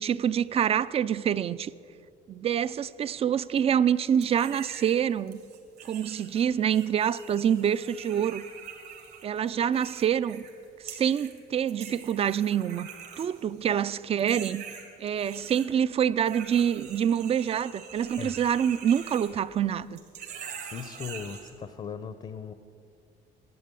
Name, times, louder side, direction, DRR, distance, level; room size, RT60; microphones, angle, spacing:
voice 1, 0.0-1.7 2.3-5.4 5.9-8.4 9.2-10.4 10.8-12.9 13.2-14.6 15.0-20.0, right 9 dB, 35° right, 0.3 m, -26 dB
sound 1, 4.2-5.0 5.3-10.5 10.9-11.4 11.7-13.8 14.2-15.7 16.2-19.7 20.0-21.5, right 7 dB, 80° right, 2.3 m, -44 dB
voice 2, 20.7-22.5, left 6 dB, 35° left, 0.6 m, -38 dB
11.0 x 8.7 x 8.4 m
cardioid pair, 110°, 17 cm